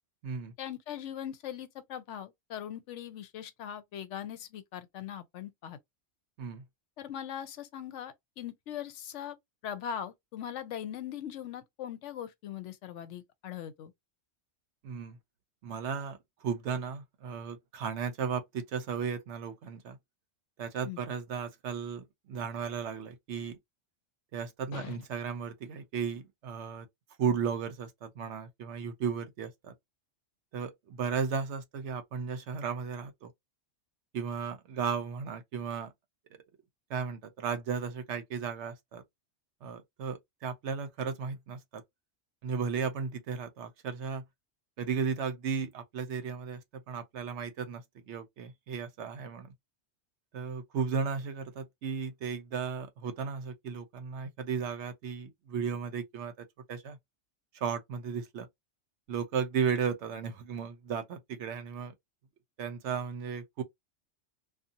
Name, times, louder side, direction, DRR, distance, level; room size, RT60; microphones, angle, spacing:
voice 1, 0.6-5.8 7.0-9.4 9.6-13.9 20.8-21.0 24.7-25.0, left 9 dB, 75° left, 0.9 m, -40 dB
voice 2, 14.8-15.2 15.6-20.0 20.6-23.6 24.3-26.9 27.2-29.7 30.5-33.3 34.1-35.9 36.9-39.0 39.6-41.8 42.4-44.2 44.8-49.5 50.3-56.3 56.7-57.0 57.6-58.5 59.1-61.9 62.6-63.6, right 6 dB, 70° right, 0.9 m, -35 dB
2.7 x 2.3 x 2.6 m
omnidirectional pair, 1.3 m